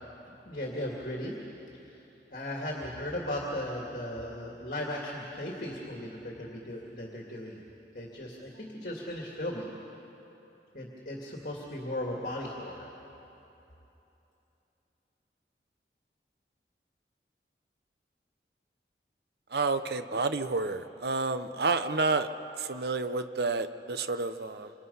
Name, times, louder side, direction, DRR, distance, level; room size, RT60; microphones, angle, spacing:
voice 1, 0.4-1.3 1.7-2.0 2.3-7.6 7.9-9.7 10.7-12.9, left 1 dB, 50° left, -1 dB, 2.3 m, -37 dB
voice 2, 19.5-22.3 22.6-24.7, right 3 dB, 70° right, 10 dB, 0.8 m, -30 dB
27.5 x 26.0 x 5.6 m, 3.0 s
head